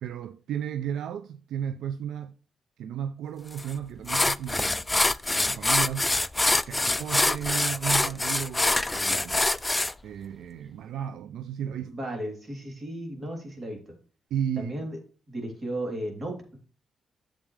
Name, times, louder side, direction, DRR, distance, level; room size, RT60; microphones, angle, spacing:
voice 1, 0.0-2.3 2.8-6.1 6.7-9.5 10.0-12.0 14.3-14.9, right 9 dB, 80° right, 0.3 m, -34 dB
sound 1, 3.6-3.7 4.1-9.9, left 2 dB, 20° left, 0.3 m, -25 dB
voice 2, 11.8-13.9 14.6-15.0 15.3-16.6, right 1 dB, 40° right, 3.1 m, -35 dB
8.8 x 7.2 x 3.2 m
cardioid pair, 65°, 0 cm